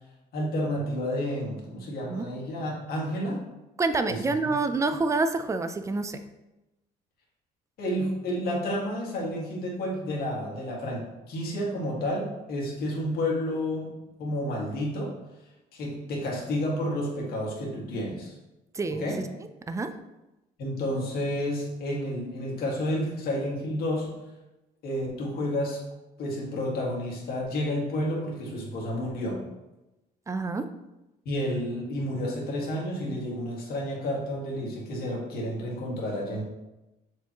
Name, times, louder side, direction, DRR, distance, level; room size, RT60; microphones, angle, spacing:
voice 1, 0.3-3.4 4.1-4.5 7.8-15.1 15.7-18.4 19.0-19.2 20.6-24.1 24.8-25.8 26.2-29.4 31.3-36.4, left 1 dB, 65° left, -2 dB, 2.0 m, -30 dB
voice 2, 3.8-6.2 18.7-19.1 19.7-19.9 30.3-30.7, right 3 dB, 20° right, 9 dB, 0.5 m, -27 dB
7.0 x 4.7 x 3.0 m, 0.98 s
cardioid pair, 110°, 17 cm